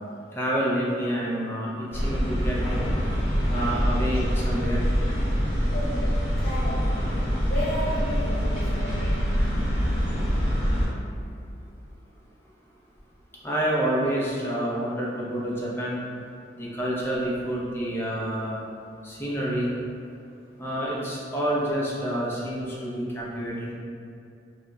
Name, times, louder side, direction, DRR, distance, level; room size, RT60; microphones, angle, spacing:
voice 1, 0.3-2.6 3.5-4.9 13.4-16.0 16.6-18.6 19.0-19.7 20.6-23.7, right 1 dB, 15° left, -6 dB, 0.4 m, -28 dB
sound 1, 1.9-10.9, equal, 65° right, 1.0 m, -25 dB
voice 2, 5.7-7.1 7.5-9.2, equal, 60° left, -6 dB, 0.7 m, -33 dB
2.1 x 2.1 x 3.6 m, 2.5 s
head